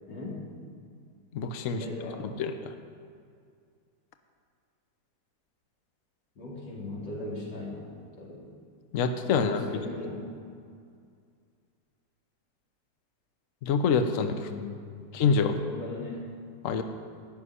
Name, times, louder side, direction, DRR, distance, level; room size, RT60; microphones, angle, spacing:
voice 1, 0.1-0.4 1.8-2.4 6.4-7.9 8.2-8.5 9.3-10.3 14.3-15.1 15.5-16.3, left 2 dB, 80° left, -4 dB, 3.8 m, -38 dB
voice 2, 1.3-1.8 2.2-2.5 8.9-9.8 13.6-14.5 15.1-15.6 16.6-16.8, left 5 dB, 55° left, 7 dB, 1.1 m, -26 dB
15.0 x 6.9 x 9.9 m, 2.2 s
omnidirectional pair, 1.9 m